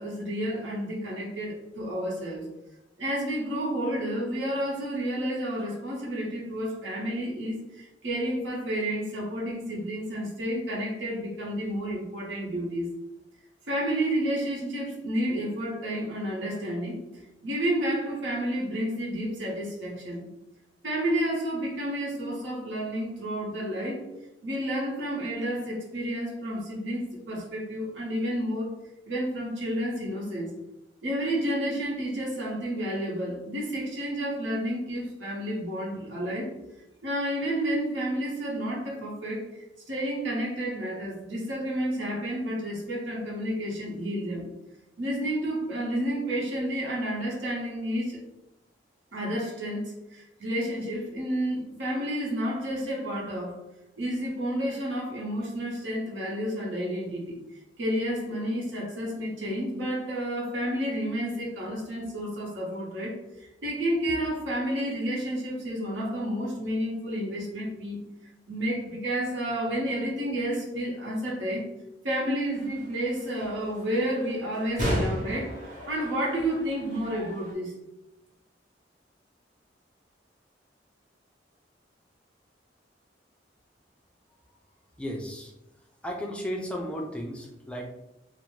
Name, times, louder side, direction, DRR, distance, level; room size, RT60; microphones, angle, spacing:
voice 1, 0.0-2.5 3.0-12.9 13.7-20.2 20.8-24.0 24.4-28.8 29.1-30.5 31.0-36.5 37.0-44.5 45.0-48.2 49.1-53.6 54.0-57.4 57.8-68.0 68.5-71.7 72.0-75.6 75.9-77.7, equal, 85° right, -2 dB, 0.8 m, -30 dB
sound 1, 72.5-77.5, equal, 45° right, 0.8 m, -35 dB
voice 2, 85.0-85.5 86.0-87.9, equal, 5° left, 0 dB, 0.3 m, -34 dB
2.5 x 2.0 x 3.0 m, 0.92 s
head